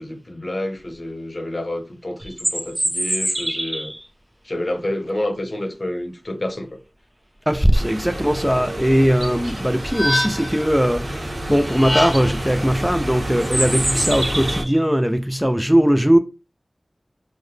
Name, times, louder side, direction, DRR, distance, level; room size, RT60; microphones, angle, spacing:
voice 1, 0.0-3.9 4.4-6.7, left 1 dB, 45° left, 0.8 m, -28 dB
sound 1, 2.2-4.0 8.5-8.6 9.1-9.5 11.5-11.6 12.0-12.2 13.4-14.8, right 1 dB, 25° right, 1.0 m, -25 dB
voice 2, 7.5-16.2, equal, 5° right, 0.3 m, -19 dB
sound 2, 7.7-14.6, right 1 dB, 60° right, 0.8 m, -29 dB
sound 3, 9.4-10.7 11.6-12.5, left 1 dB, 15° left, 0.7 m, -25 dB
3.7 x 2.1 x 3.2 m
wide cardioid pair, 60°, 0 cm